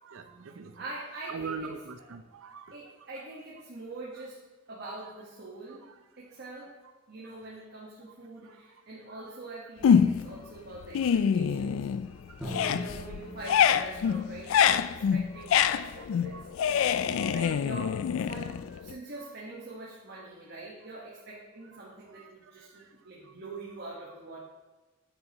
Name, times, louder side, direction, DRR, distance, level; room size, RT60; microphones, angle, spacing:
voice 1, 0.0-0.8 1.3-2.7 8.5-8.6 12.4-12.5 16.3-16.5 16.8-17.3 22.2-22.3 22.6-22.7, right 5 dB, 90° right, 8 dB, 0.6 m, -42 dB
voice 2, 0.7-1.7 2.0-2.1 2.7-5.8 6.2-11.9 12.4-16.4 17.3-24.4, right 2 dB, 55° right, -5 dB, 1.4 m, -44 dB
sound 1, 9.8-10.4 10.8-12.1 12.4-18.9, left 8 dB, 85° left, 0.3 m, -25 dB
Drum, 12.4-16.2, equal, ahead, 1.9 m, -44 dB
9.9 x 7.5 x 3.0 m, 1.2 s
head